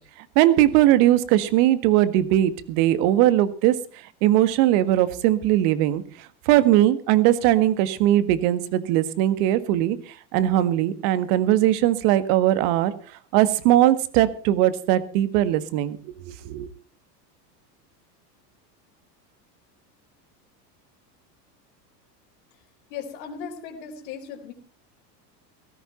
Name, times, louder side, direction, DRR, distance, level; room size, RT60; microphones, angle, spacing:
voice 1, 0.4-3.7 4.2-6.0 6.5-10.0 10.3-12.9 13.3-16.0 16.3-16.7, right 13 dB, 65° right, 13 dB, 1.8 m, -20 dB
voice 2, 22.9-24.5, left 6 dB, 60° left, 5 dB, 3.9 m, -37 dB
17.0 x 14.0 x 4.4 m, 0.41 s
supercardioid pair, 110°, 50 cm